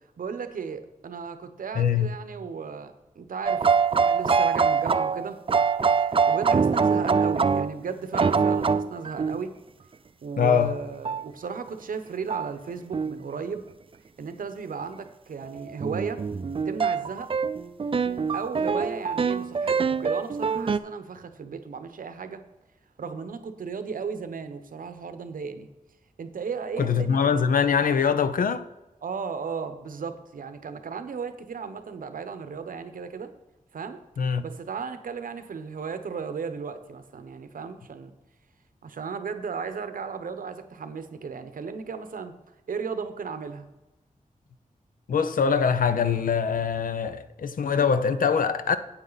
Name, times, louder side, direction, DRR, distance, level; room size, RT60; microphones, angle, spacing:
voice 1, 0.2-5.4 6.0-9.5 10.2-13.6 14.2-16.2 16.6-17.3 18.3-22.4 23.0-25.7 26.2-27.4 29.0-33.3 33.7-34.0 34.4-38.1 38.8-42.3 42.7-43.7, right 5 dB, 85° right, 0.8 m, -35 dB
voice 2, 1.8-2.1 10.4-10.8 26.8-28.6 34.2-34.4 45.1-48.8, left 6 dB, 85° left, 0.6 m, -23 dB
sound 1, 3.5-7.8 8.1-9.4 11.1-11.2 12.3-12.5 12.9-13.2 15.4-20.8, right 5 dB, 40° right, 0.4 m, -24 dB
8.9 x 8.4 x 4.0 m
wide cardioid pair, 90°, 14 cm